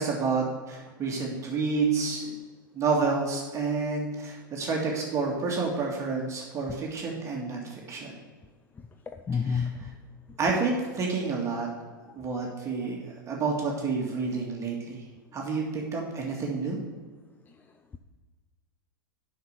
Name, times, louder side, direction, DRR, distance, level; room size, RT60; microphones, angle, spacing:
voice 1, 0.0-2.3 2.7-8.1 9.4-9.7 10.4-11.7 12.2-13.0 13.3-15.0 15.3-16.8, right 4 dB, 25° right, -2 dB, 2.0 m, -29 dB
voice 2, 9.3-9.8, left 6 dB, 15° left, 6 dB, 0.5 m, -28 dB
7.9 x 6.0 x 6.6 m, 1.4 s
hypercardioid pair, 105°, 11 cm